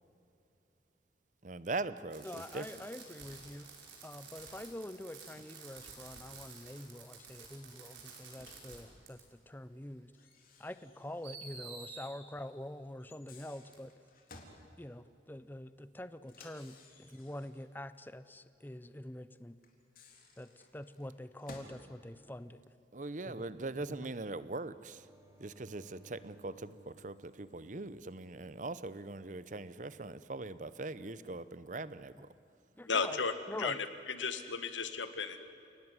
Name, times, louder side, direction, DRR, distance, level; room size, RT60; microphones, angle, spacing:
voice 1, 1.4-2.7 22.9-25.1 25.4-32.3, right 2 dB, 40° right, 15 dB, 0.8 m, -41 dB
Fireworks, 2.1-8.8 9.1-9.2 10.3-10.4 11.2-12.1 13.7-13.8, right 4 dB, 85° right, 5.6 m, -51 dB
voice 2, 2.2-3.6 4.0-10.1 10.6-13.9 14.8-19.6 20.4-22.6 23.3-23.5 32.8-33.2 33.5-33.8, left 1 dB, 10° left, 13 dB, 0.6 m, -45 dB
Microwave oven, 8.3-8.8 10.1-11.5 11.8-11.9 13.0-14.6 16.2-17.7 19.6-21.8, left 3 dB, 50° left, 3.7 m, -57 dB
sound 1, 24.9-29.5 32.8-33.3, right 2 dB, 15° right, 3.3 m, -62 dB
voice 3, 32.9-33.3 33.6-35.4, left 5 dB, 85° left, 10 dB, 1.8 m, -34 dB
29.5 x 18.5 x 9.8 m, 2.8 s
head